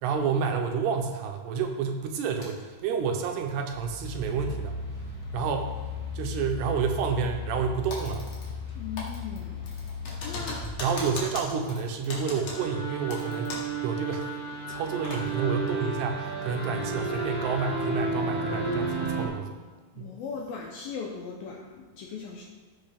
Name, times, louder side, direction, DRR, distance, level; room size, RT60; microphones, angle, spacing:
voice 1, 0.0-4.8 5.3-5.7 6.1-8.3 10.4-10.5 10.8-14.4 14.7-19.6 20.0-20.1, right 6 dB, 80° right, 4 dB, 2.7 m, -29 dB
sound 1, 2.4-2.6 3.5-11.5, left 5 dB, 25° left, 0.9 m, -37 dB
Typing, 7.9-8.7 9.0-13.8 14.1-14.2 14.7-15.2, left 2 dB, 55° left, 2.5 m, -39 dB
voice 2, 8.8-9.7 10.2-10.7 20.0-22.4, left 6 dB, 80° left, -1 dB, 2.2 m, -38 dB
sound 2, 12.4-19.3, right 3 dB, 5° right, 1.7 m, -32 dB
14.5 x 6.1 x 3.5 m, 1.3 s
omnidirectional pair, 5.0 m